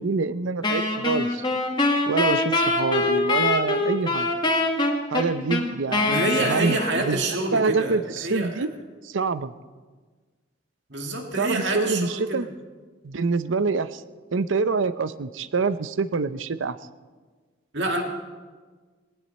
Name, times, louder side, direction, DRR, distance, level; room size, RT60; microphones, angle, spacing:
voice 1, 0.0-1.4 2.1-4.3 5.1-7.2 7.5-8.7 9.0-9.5 11.4-12.5 13.0-14.0 14.3-16.8, right 4 dB, 85° right, 14 dB, 0.6 m, -26 dB
Wind instrument woodwind instrument, 0.6-7.2, left 2 dB, 25° left, 1.7 m, -24 dB
voice 2, 6.1-8.7 10.9-12.5 17.7-18.0, right 2 dB, 65° right, 2 dB, 2.2 m, -27 dB
19.5 x 17.5 x 4.3 m, 1.4 s
head